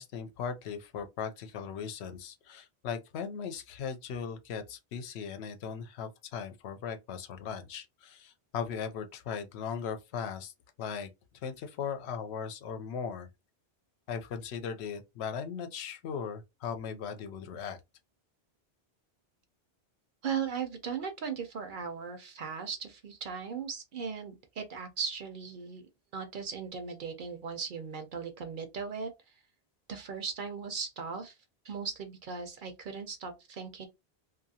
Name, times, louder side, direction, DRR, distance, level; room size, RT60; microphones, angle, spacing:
voice 1, 0.0-10.5 10.8-11.1 11.4-13.3 14.1-17.8, left 6 dB, 80° left, 0.8 m, -38 dB
voice 2, 20.2-29.3 29.9-31.4 31.6-33.9, right 6 dB, 60° right, 0.6 m, -38 dB
2.7 x 2.4 x 2.7 m
omnidirectional pair, 1.1 m